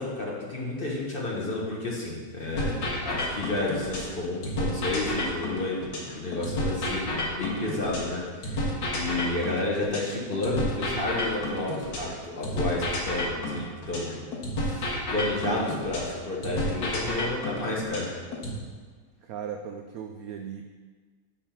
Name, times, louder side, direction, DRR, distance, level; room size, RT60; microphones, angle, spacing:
voice 1, 0.0-14.2 14.6-18.1, left 2 dB, 35° left, -3 dB, 1.2 m, -31 dB
sound 1, 2.6-4.1 4.4-8.1 8.4-12.1 12.4-16.1 16.4-18.6, left 1 dB, 75° left, 2.0 m, -30 dB
voice 2, 19.2-20.6, right 7 dB, 75° right, 5 dB, 0.8 m, -37 dB
10.0 x 3.7 x 5.8 m, 1.5 s
omnidirectional pair, 2.0 m